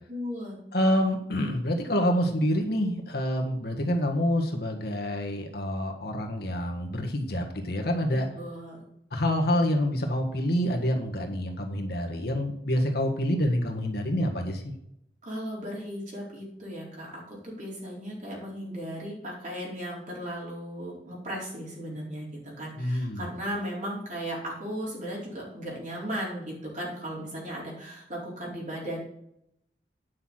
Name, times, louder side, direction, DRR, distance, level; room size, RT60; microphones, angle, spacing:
voice 1, 0.1-0.6 8.1-8.8 15.2-29.0, equal, 45° right, -4 dB, 4.4 m, -36 dB
voice 2, 0.7-8.3 9.1-14.7 22.8-23.3, equal, 60° left, 3 dB, 1.7 m, -27 dB
9.7 x 5.8 x 6.3 m, 0.77 s
head